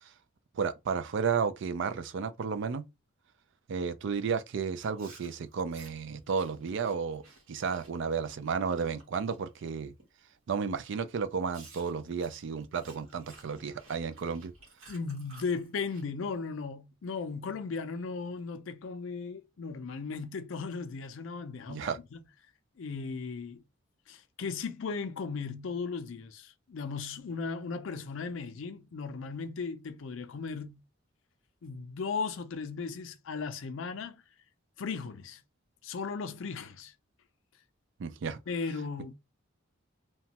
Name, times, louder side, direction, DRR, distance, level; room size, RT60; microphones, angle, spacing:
voice 1, 0.5-2.8 3.7-7.2 7.5-9.9 10.5-14.5 21.7-22.0 38.0-38.4, right 6 dB, 60° right, 0.3 m, -32 dB
Chewing mastication, 4.8-9.6 10.0-10.3 10.8-10.9 11.5-16.0, right 3 dB, 75° right, 1.2 m, -56 dB
voice 2, 14.9-22.2 22.8-23.6 24.1-30.8 31.6-34.2 34.8-35.4 35.8-36.9 38.5-39.1, left 4 dB, 65° left, 0.4 m, -36 dB
2.9 x 2.2 x 2.8 m
head